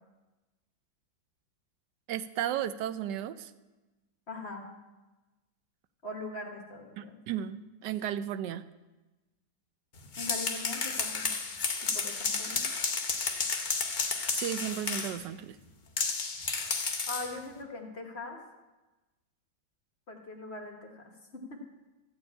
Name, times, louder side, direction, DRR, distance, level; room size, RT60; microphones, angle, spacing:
voice 1, 2.1-3.5 7.0-8.6 14.3-15.6, right 10 dB, 75° right, 12 dB, 1.1 m, -34 dB
voice 2, 4.3-4.7 6.0-7.2 10.2-11.3 11.8-12.6 17.1-18.4 20.1-21.0 21.3-21.6, left 2 dB, 40° left, 2 dB, 1.2 m, -41 dB
sound 1, 10.0-15.2 16.0-17.3, left 4 dB, 70° left, 0.4 m, -32 dB
14.0 x 4.7 x 8.4 m, 1.1 s
omnidirectional pair, 2.1 m